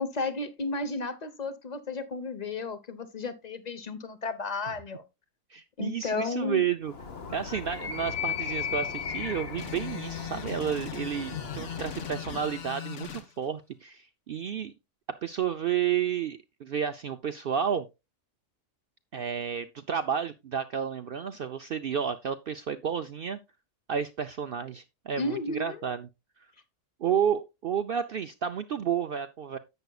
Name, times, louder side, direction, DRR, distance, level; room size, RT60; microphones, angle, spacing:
voice 1, 0.0-5.0 5.8-6.6 25.1-25.9, left 3 dB, 35° left, 1.0 m, -33 dB
voice 2, 5.5-6.9 7.3-14.7 15.2-17.9 19.1-23.4 23.9-26.1 26.4-26.5 27.0-29.6, right 8 dB, 60° right, 0.6 m, -31 dB
Animal, 6.8-12.7, left 7 dB, 50° left, 1.4 m, -36 dB
sound 1, 9.6-13.2, left 8 dB, 65° left, 1.4 m, -39 dB
11.0 x 8.0 x 2.3 m
omnidirectional pair, 1.4 m